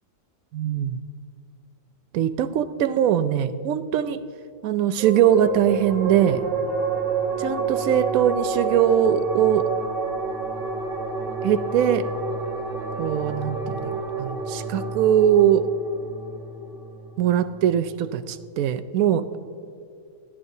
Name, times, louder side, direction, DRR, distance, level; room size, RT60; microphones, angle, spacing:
voice 1, 0.5-1.0 2.1-4.2 4.6-6.4 7.4-9.7 11.4-12.1 13.0-15.7 17.2-19.4, right 10 dB, 70° right, 11 dB, 0.8 m, -21 dB
sound 1, 5.0-17.9, right 4 dB, 50° right, 1.9 m, -29 dB
20.0 x 13.5 x 2.7 m, 2.4 s
omnidirectional pair, 1.8 m